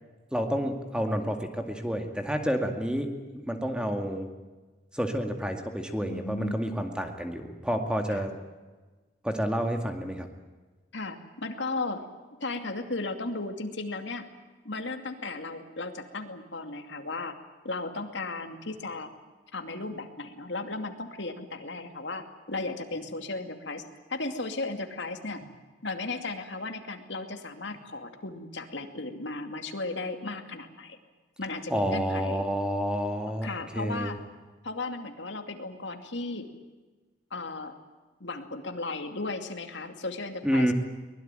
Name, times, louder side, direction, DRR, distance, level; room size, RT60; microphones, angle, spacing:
voice 1, 0.3-3.1 3.3-4.3 4.9-8.3 9.2-10.3 31.7-33.5 33.7-34.1 40.4-40.7, equal, 5° right, 4 dB, 2.2 m, -29 dB
voice 2, 6.0-6.6 8.1-8.3 10.9-12.1 12.4-14.3 14.6-17.3 17.6-19.1 19.5-23.8 24.1-25.4 25.8-31.0 31.4-32.5 33.4-34.2 34.6-36.5 37.3-37.7 38.2-40.7, left 3 dB, 60° left, 6 dB, 2.5 m, -35 dB
23.5 x 21.0 x 9.1 m, 1.3 s
head